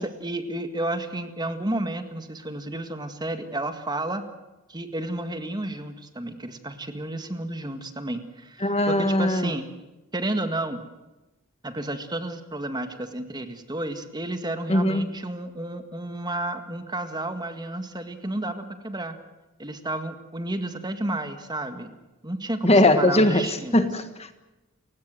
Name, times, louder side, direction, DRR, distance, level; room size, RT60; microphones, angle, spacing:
voice 1, 0.0-4.3 4.7-9.7 10.1-10.8 11.6-19.2 19.6-21.9 22.2-23.9, right 1 dB, 20° right, 8 dB, 1.8 m, -31 dB
voice 2, 8.6-9.5 14.7-15.2 22.6-23.5 23.7-24.3, left 1 dB, 30° left, 9 dB, 1.5 m, -20 dB
30.0 x 16.5 x 7.8 m, 1.0 s
head